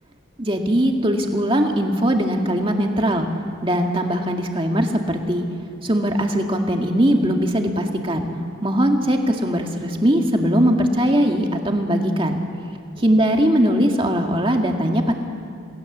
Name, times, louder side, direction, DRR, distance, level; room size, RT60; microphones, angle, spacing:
voice 1, 0.4-3.3 3.6-5.5 5.8-8.3 8.6-12.4 13.0-15.1, equal, 25° right, 3 dB, 1.9 m, -20 dB
27.5 x 18.5 x 7.3 m, 2.3 s
head